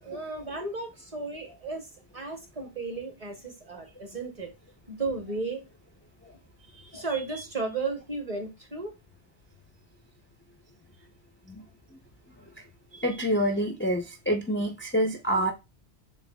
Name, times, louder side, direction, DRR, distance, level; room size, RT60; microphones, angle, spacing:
voice 1, 0.0-1.9 2.1-4.5 4.9-5.6 6.7-8.9, right 3 dB, 35° right, 4 dB, 0.9 m, -34 dB
voice 2, 12.9-15.5, equal, 20° left, 2 dB, 0.3 m, -27 dB
7.0 x 2.4 x 2.2 m, 0.24 s
omnidirectional pair, 1.1 m